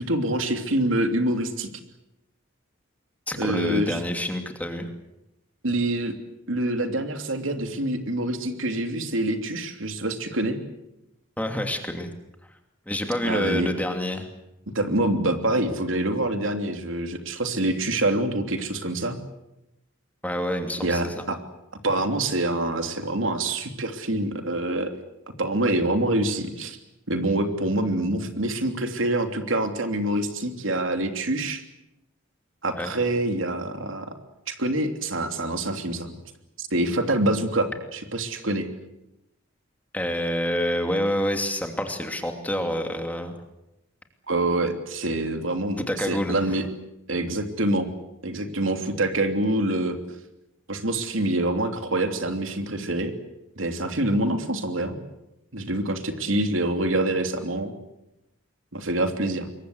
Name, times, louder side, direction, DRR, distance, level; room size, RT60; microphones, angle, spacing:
voice 1, 0.0-1.7 3.4-4.0 5.6-6.1 6.5-10.6 13.2-13.7 14.7-19.2 20.8-21.4 21.8-24.9 25.4-26.8 27.1-31.6 32.6-34.1 34.5-36.2 36.6-38.7 44.3-46.6 47.1-47.9 48.2-50.0 50.7-53.1 53.6-54.9 55.5-57.7 58.7-59.5, right 1 dB, 80° right, 6 dB, 3.1 m, -26 dB
voice 2, 3.3-4.9 11.4-12.1 12.9-14.3 20.2-21.2 32.7-32.9 39.9-43.4 45.8-46.4, equal, 10° left, 5 dB, 2.8 m, -27 dB
26.5 x 23.0 x 8.0 m, 0.90 s
head